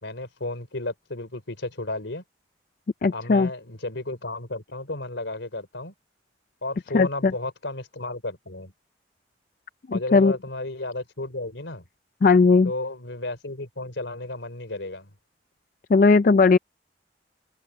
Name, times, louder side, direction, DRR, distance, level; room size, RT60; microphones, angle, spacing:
voice 1, 0.0-2.2 3.1-5.9 6.6-8.7 9.9-11.8 12.6-15.1, left 2 dB, 85° left, 3.9 m, -33 dB
voice 2, 3.0-3.5 6.9-7.3 9.9-10.3 12.2-12.7 15.9-16.6, left 4 dB, 45° left, 0.4 m, -17 dB
open air
head